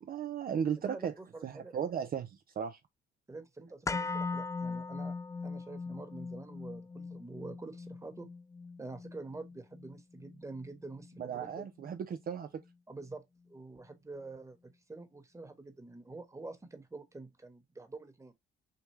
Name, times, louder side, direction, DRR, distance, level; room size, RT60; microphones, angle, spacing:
voice 1, 0.0-1.1 1.4-2.8 11.2-12.5, right 7 dB, 50° right, 0.6 m, -36 dB
voice 2, 0.8-1.8 3.3-5.2 5.4-8.3 8.8-11.7 12.9-13.2 13.5-14.6 14.9-18.3, right 3 dB, 15° right, 1.3 m, -46 dB
sound 1, 3.9-11.9 12.2-12.3, left 4 dB, 15° left, 0.3 m, -40 dB
6.7 x 2.3 x 3.1 m
cardioid pair, 90°, 20 cm